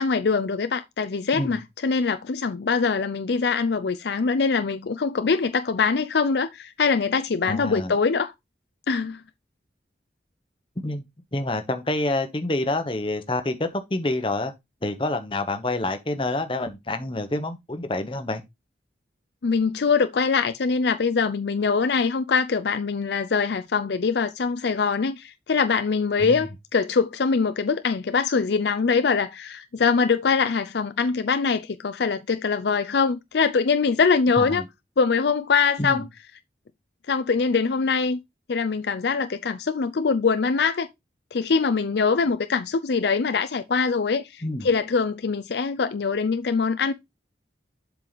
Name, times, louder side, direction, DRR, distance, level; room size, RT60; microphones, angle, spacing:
voice 1, 0.0-8.3 8.9-9.2 19.4-34.6 35.0-36.1 37.1-38.2 38.5-40.9 41.3-46.9, left 5 dB, 65° left, 0.5 m, -23 dB
voice 2, 7.5-7.9 10.8-11.0 11.3-14.5 14.8-18.4 26.2-26.4 34.4-34.7 35.8-36.0 44.4-44.7, left 2 dB, 25° left, 1.0 m, -27 dB
7.6 x 4.7 x 4.0 m
head